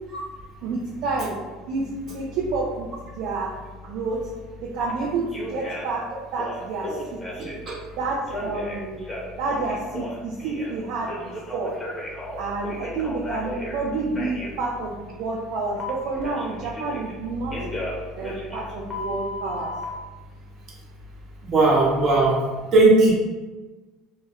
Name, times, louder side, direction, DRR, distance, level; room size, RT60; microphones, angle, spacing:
voice 1, 0.6-1.4 1.7-2.9 3.1-3.5 3.8-4.3 4.6-6.1 6.3-7.2 7.9-9.1 9.4-11.8 12.4-17.6 18.1-19.7, right 3 dB, 65° right, -4 dB, 0.4 m, -29 dB
Telephone, 4.8-4.9 5.3-6.0 6.3-7.7 8.3-10.8 11.1-13.8 14.1-14.5 15.8-17.2 17.5-19.8, left 1 dB, 20° left, 0.7 m, -34 dB
voice 2, 7.4-7.7 21.4-22.4 22.7-23.1, right 2 dB, 50° right, -4 dB, 0.9 m, -17 dB
2.2 x 2.1 x 3.5 m, 1.3 s
hypercardioid pair, 80°, 0 cm